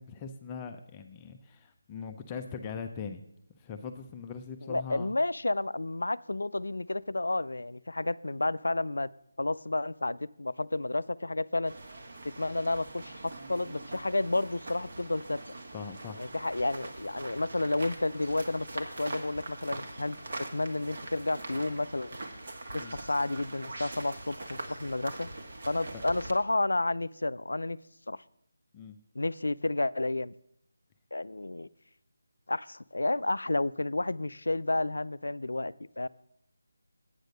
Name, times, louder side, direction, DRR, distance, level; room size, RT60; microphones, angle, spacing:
voice 1, 0.0-3.2 3.6-5.1 15.7-16.3 22.8-22.9 25.9-26.0 28.7-29.0, left 6 dB, 15° left, 5 dB, 0.4 m, -41 dB
voice 2, 4.6-9.1 9.4-11.7 12.2-15.4 16.2-22.2 22.7-25.3 25.7-27.8 28.1-28.2 29.1-30.3 31.1-31.7 32.5-36.1, left 2 dB, 90° left, 18 dB, 0.4 m, -31 dB
sound 1, 11.6-26.3, right 2 dB, 50° right, 1.4 m, -43 dB
8.9 x 6.5 x 6.6 m, 0.73 s
figure-of-eight pair, 170°, 0 cm